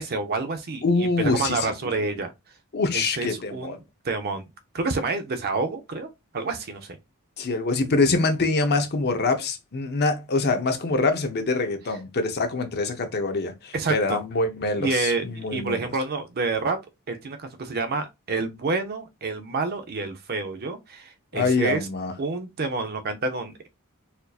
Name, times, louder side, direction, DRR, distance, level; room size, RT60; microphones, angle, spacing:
voice 1, 0.0-2.3 2.9-3.8 4.0-4.5 4.7-7.0 13.7-14.2 14.8-16.8 17.1-21.9 22.2-23.7, right 3 dB, 45° right, 0.6 m, -28 dB
voice 2, 0.8-1.7 2.7-3.8 7.4-15.8 21.3-22.1, left 3 dB, 45° left, 0.7 m, -24 dB
4.3 x 2.7 x 2.4 m
head